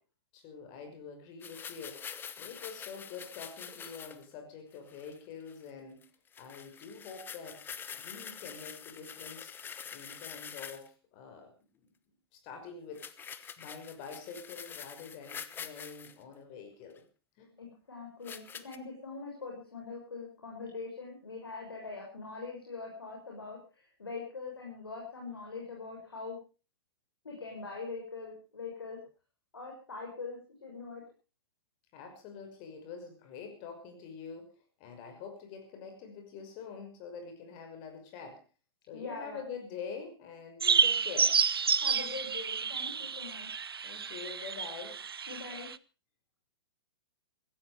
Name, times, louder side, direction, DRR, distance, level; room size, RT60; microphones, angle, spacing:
voice 1, 0.3-2.0 2.4-6.1 6.4-7.7 7.9-9.5 9.9-13.1 13.6-17.0 17.4-17.5 31.9-34.5 34.8-38.4 38.9-41.4 43.8-45.0, left 5 dB, 35° left, 6 dB, 6.1 m, -46 dB
sound 1, 1.4-4.3 4.8-5.2 5.5-5.7 6.0-6.1 6.3-10.9 13.0-16.1 17.0-17.1 18.2-18.8, left 7 dB, 15° left, 1.1 m, -45 dB
voice 2, 17.6-26.4 27.2-29.0 29.5-31.0 38.9-39.4 41.8-43.6 45.3-45.7, left 4 dB, 75° left, -1 dB, 6.8 m, -43 dB
sound 2, 40.6-45.8, right 6 dB, 75° right, 0.7 m, -30 dB
16.0 x 15.5 x 5.1 m, 0.36 s
figure-of-eight pair, 110°, 13 cm